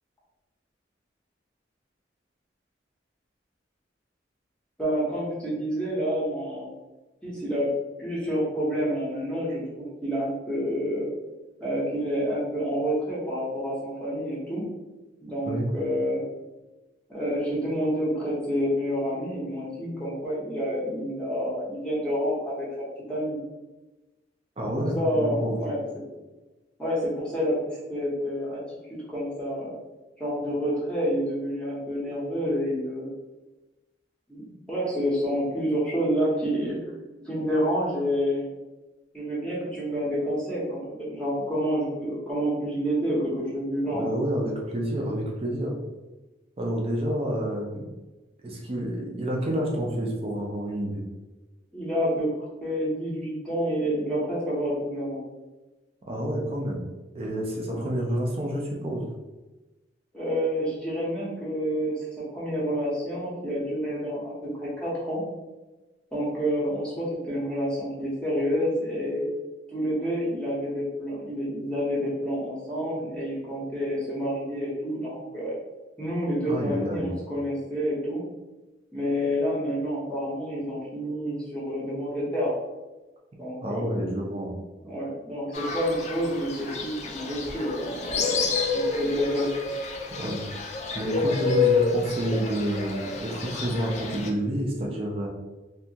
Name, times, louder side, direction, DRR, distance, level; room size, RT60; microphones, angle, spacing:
voice 1, 4.8-6.7 7.2-11.1 11.6-14.7 15.2-16.2 17.1-23.4 25.0-25.8 26.8-28.6 28.9-29.8 30.2-33.1 34.3-36.8 37.2-38.5 39.1-44.0 51.7-55.2 57.7-57.8 60.1-64.3 64.6-65.2 66.1-69.3 69.7-75.5 76.0-78.2 78.9-82.6 83.4-83.9 84.8-89.5, equal, 5° left, -8 dB, 0.7 m, -28 dB
voice 2, 24.6-25.6 43.9-45.8 46.6-47.9 48.4-51.0 56.1-56.8 57.1-59.1 76.4-77.1 83.6-84.5 90.2-90.4 90.9-95.3, right 1 dB, 30° right, -1 dB, 0.4 m, -29 dB
Fowl, 85.5-94.3, left 4 dB, 40° left, 0.3 m, -29 dB
2.7 x 2.3 x 2.7 m, 1.1 s
head